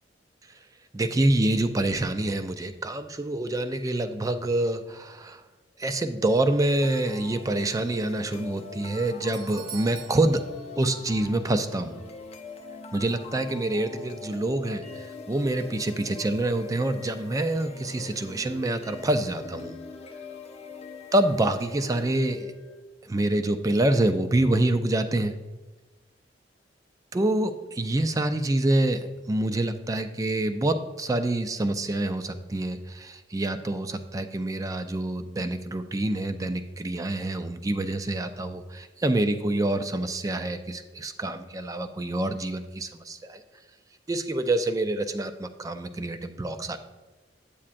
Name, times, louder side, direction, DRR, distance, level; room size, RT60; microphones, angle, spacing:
voice 1, 0.9-5.4 5.8-10.4 10.8-11.9 12.9-19.8 21.1-22.5 23.1-25.3 27.1-43.4 44.1-46.8, right 1 dB, 20° right, 9 dB, 0.3 m, -26 dB
sound 1, 6.8-22.8, left 4 dB, 35° left, 0.5 m, -43 dB
Doorbell, 9.2-11.4 11.6-11.7 12.5-12.6, right 9 dB, 50° right, 0.7 m, -45 dB
8.5 x 8.4 x 2.5 m, 1.2 s
head